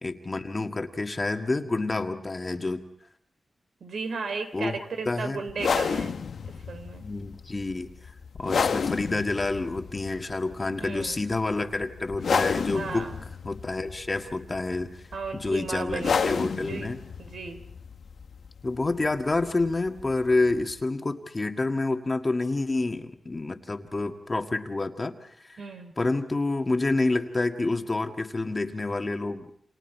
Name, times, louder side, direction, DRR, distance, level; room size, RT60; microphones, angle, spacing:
voice 1, 0.0-2.8 4.5-4.8 5.1-5.4 7.0-7.9 8.4-13.1 13.4-15.1 15.3-17.0 18.6-25.6 26.0-29.6, left 2 dB, 30° left, 5 dB, 1.8 m, -28 dB
voice 2, 3.8-7.1 10.8-11.2 12.7-13.2 15.1-16.9 17.2-17.6 25.6-25.9, right 4 dB, 85° right, 7 dB, 3.7 m, -35 dB
sound 1, 5.5-20.8, left 5 dB, 75° left, 1.0 m, -32 dB
29.0 x 28.0 x 4.6 m, 0.64 s
wide cardioid pair, 110°, 0 cm